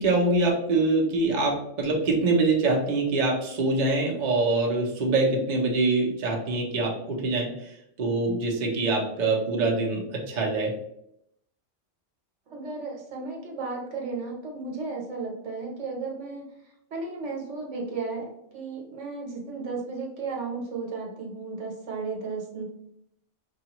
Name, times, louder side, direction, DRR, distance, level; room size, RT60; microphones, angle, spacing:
voice 1, 0.0-7.7 8.0-10.7, right 3 dB, 45° right, -1 dB, 0.7 m, -24 dB
voice 2, 12.5-16.5 16.9-22.6, right 4 dB, 70° right, -1 dB, 1.2 m, -34 dB
4.8 x 2.3 x 2.9 m, 0.77 s
omnidirectional pair, 1.3 m